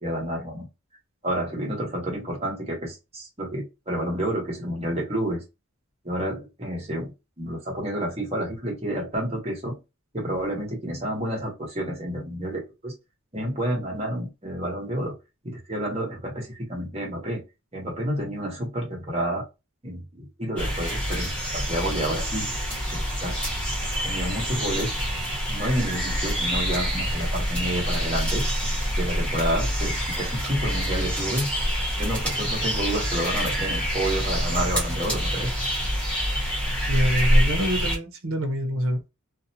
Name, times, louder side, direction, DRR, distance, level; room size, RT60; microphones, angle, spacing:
voice 1, 0.0-0.7 1.2-5.4 6.0-7.1 7.4-9.8 10.1-12.9 13.3-15.2 15.4-17.4 17.7-19.4 19.8-22.5 22.9-23.4 23.7-23.8 24.0-24.9 25.5-28.4 29.0-31.5 32.0-35.5, right 1 dB, 30° right, 1.2 m, -29 dB
sound 1, 20.6-38.0, equal, 5° left, 1.1 m, -26 dB
voice 2, 36.9-39.1, equal, 70° right, 0.8 m, -26 dB
2.7 x 2.1 x 2.8 m
head